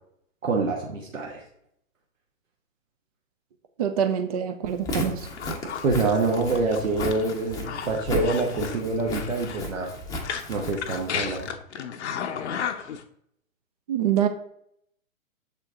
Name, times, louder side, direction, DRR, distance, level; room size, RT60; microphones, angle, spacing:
voice 1, 0.4-1.4 5.8-9.9 10.5-11.5, right 3 dB, 70° right, -1 dB, 1.3 m, -26 dB
voice 2, 3.8-5.3 13.9-14.3, right 9 dB, 30° right, 7 dB, 0.4 m, -25 dB
Walk footsteps, 4.7-11.5, equal, 10° left, 0.7 m, -34 dB
sound 1, 5.2-13.0, left 7 dB, 55° left, 0.7 m, -34 dB
6.9 x 4.4 x 3.6 m, 0.71 s
figure-of-eight pair, 120°, 41 cm